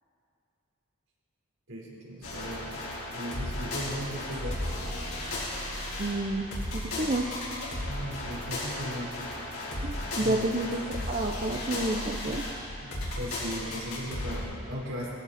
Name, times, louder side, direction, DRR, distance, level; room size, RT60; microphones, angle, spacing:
voice 1, 1.7-2.7 3.1-4.7 7.0-7.1 7.9-9.1 10.2-10.4 12.8-15.1, equal, 70° right, -4 dB, 4.3 m, -37 dB
sound 1, 2.2-14.4, left 1 dB, 85° left, 5.0 m, -35 dB
voice 2, 6.0-7.3 9.8-12.4, right 2 dB, 35° right, 0 dB, 0.8 m, -30 dB
19.5 x 16.0 x 4.3 m, 2.5 s
head